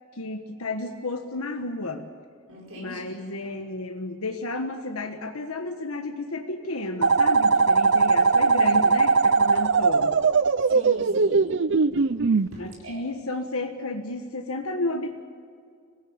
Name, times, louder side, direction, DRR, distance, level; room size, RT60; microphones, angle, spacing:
voice 1, 0.1-2.1 2.8-10.2 12.6-15.2, left 2 dB, 80° left, 5 dB, 1.4 m, -32 dB
voice 2, 2.5-3.3 10.6-11.5 12.0-13.0, right 1 dB, 75° right, -2 dB, 5.2 m, -43 dB
sound 1, 7.0-12.5, right 4 dB, 55° right, 0.5 m, -20 dB
25.0 x 17.5 x 8.8 m, 2.3 s
head